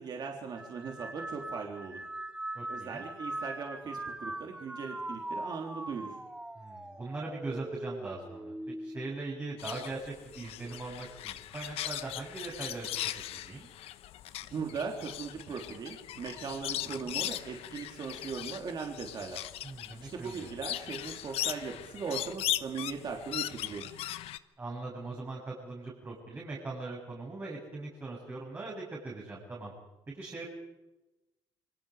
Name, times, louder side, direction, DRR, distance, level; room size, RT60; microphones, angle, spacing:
voice 1, 0.0-2.1 2.7-6.1 14.5-19.5 20.0-24.0, right 5 dB, 45° right, 1 dB, 3.5 m, -39 dB
sound 1, 0.6-10.2 10.6-11.2 12.2-12.5, right 1 dB, 5° right, 0.9 m, -42 dB
voice 2, 2.5-3.0 6.6-8.5 8.8-12.9 13.3-13.7 17.0-17.1 19.6-20.6 24.6-29.7 30.1-30.5, right 3 dB, 25° right, -4 dB, 7.2 m, -40 dB
sound 2, 9.6-24.4, left 13 dB, 75° left, 1.1 m, -39 dB
27.5 x 24.0 x 5.1 m, 0.99 s
cardioid pair, 125°, 10 cm